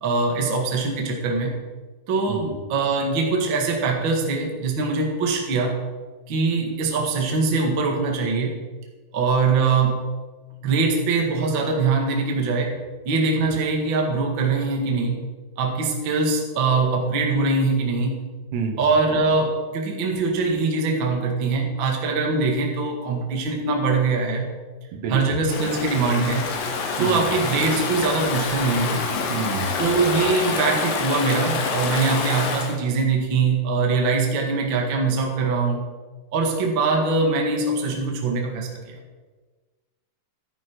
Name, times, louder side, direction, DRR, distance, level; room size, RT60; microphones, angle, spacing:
voice 1, 0.0-1.5 2.1-5.8 6.3-8.6 9.1-10.0 10.6-12.8 13.0-15.2 15.6-18.2 18.8-24.5 25.1-26.5 27.0-29.1 29.8-35.9 36.3-39.0, right 4 dB, 45° right, 1 dB, 1.7 m, -22 dB
voice 2, 18.5-18.8 24.9-25.4 27.0-27.3 29.3-29.8, right 5 dB, 75° right, 5 dB, 3.2 m, -28 dB
Stream / Ocean, 25.5-32.8, left 4 dB, 65° left, 2.7 m, -27 dB
14.0 x 11.5 x 4.6 m, 1.3 s
omnidirectional pair, 4.8 m